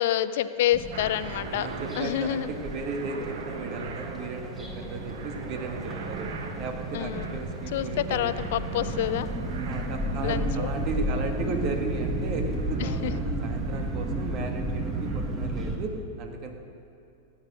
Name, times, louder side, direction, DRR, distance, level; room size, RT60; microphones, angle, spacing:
voice 1, 0.0-1.7 2.0-2.5 6.9-7.4 7.7-9.3 10.2-10.7 12.8-13.1, left 12 dB, 60° left, 14 dB, 0.5 m, -28 dB
sound 1, 0.7-15.8, right 1 dB, 15° right, 1.9 m, -33 dB
sound 2, 0.9-15.8, right 4 dB, 65° right, 1.2 m, -40 dB
voice 2, 1.6-6.3 6.6-8.3 9.6-16.6, right 3 dB, 45° right, 4 dB, 1.7 m, -35 dB
16.0 x 8.9 x 6.2 m, 2.7 s
hypercardioid pair, 95°, 0 cm